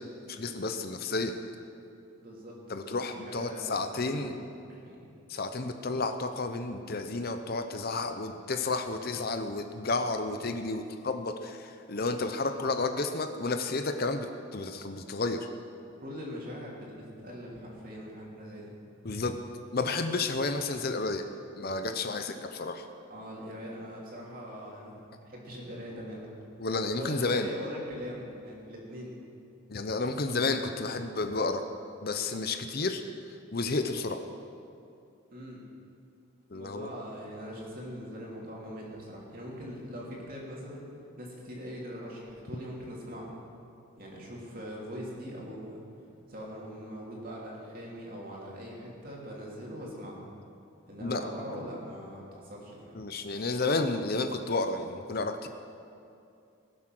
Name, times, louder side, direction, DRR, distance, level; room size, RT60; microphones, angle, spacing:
voice 1, 0.3-1.3 2.7-4.3 5.3-14.3 14.5-15.5 19.0-19.3 19.7-21.2 21.6-22.9 26.6-27.5 29.7-31.7 32.0-33.0 33.5-34.2 36.5-36.9 51.0-51.2 51.5-51.6 52.9-55.5, left 3 dB, 45° left, 7 dB, 0.7 m, -31 dB
voice 2, 2.2-4.3 4.7-5.1 16.0-18.7 23.1-26.4 26.9-29.1 35.3-35.6 36.5-40.9 41.2-43.3 44.0-45.8 46.3-50.2 50.9-53.0, equal, 40° right, -3 dB, 3.1 m, -42 dB
21.5 x 7.5 x 6.1 m, 2.5 s
head